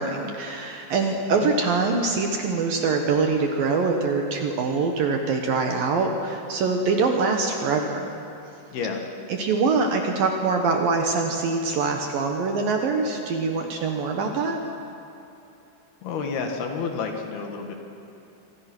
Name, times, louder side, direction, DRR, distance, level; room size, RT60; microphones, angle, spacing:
voice 1, 0.0-8.1 9.3-14.6, right 4 dB, 65° right, 3 dB, 2.6 m, -24 dB
voice 2, 8.7-9.1 16.0-17.8, left 5 dB, 65° left, 3 dB, 3.4 m, -30 dB
26.5 x 25.0 x 6.2 m, 2.7 s
omnidirectional pair, 5.4 m